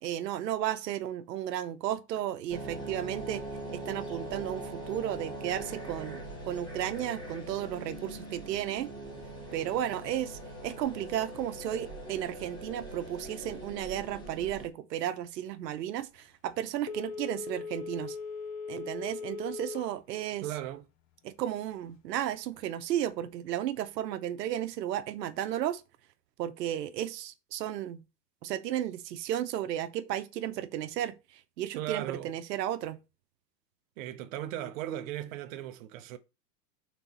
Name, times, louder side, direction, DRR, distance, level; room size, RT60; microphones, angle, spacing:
voice 1, 0.0-3.4 3.7-8.9 9.5-18.2 18.7-20.4 21.2-25.8 26.4-28.0 28.4-31.2 31.6-33.0, right 11 dB, 80° right, 0.9 m, -34 dB
sound 1, 2.5-14.7, right 1 dB, 10° left, 1.6 m, -42 dB
Telephone, 16.8-19.9 20.3-20.4, left 5 dB, 40° left, 1.1 m, -39 dB
voice 2, 20.1-20.9 31.7-32.3 34.0-36.2, right 12 dB, 55° right, 0.8 m, -37 dB
4.5 x 4.0 x 5.4 m
supercardioid pair, 140°, 49 cm